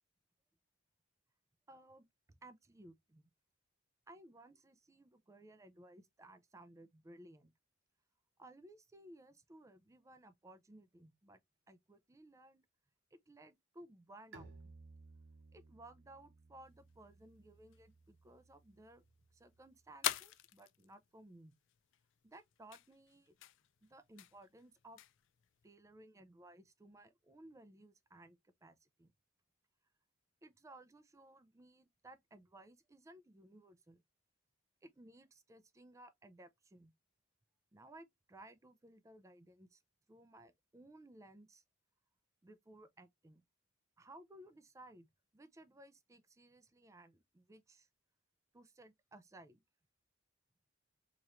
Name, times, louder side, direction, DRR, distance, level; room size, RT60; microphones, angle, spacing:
voice 1, 1.7-3.3 4.1-7.5 8.4-11.4 11.7-12.6 13.1-14.8 15.5-19.0 19.3-21.5 22.2-23.4 23.8-25.0 25.6-29.1 30.4-34.0 34.8-36.9 37.7-39.8 40.1-41.6 42.4-43.4 44.0-45.1 45.3-47.9 48.5-49.6, right 1 dB, 15° right, 0.4 m, -59 dB
Bowed string instrument, 14.3-19.9, right 3 dB, 65° right, 0.9 m, -60 dB
sound 1, 16.7-25.7, left 13 dB, 65° left, 0.3 m, -47 dB
4.2 x 3.0 x 2.4 m
head